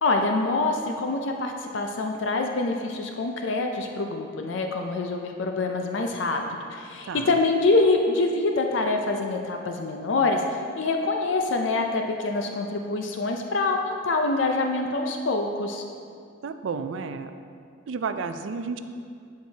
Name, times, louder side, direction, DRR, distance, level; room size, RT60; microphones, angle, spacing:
voice 1, 0.0-15.8, left 3 dB, 80° left, 3 dB, 0.5 m, -25 dB
voice 2, 16.4-17.3 17.9-18.8, right 5 dB, 85° right, 9 dB, 0.4 m, -31 dB
12.0 x 4.7 x 2.8 m, 2.3 s
head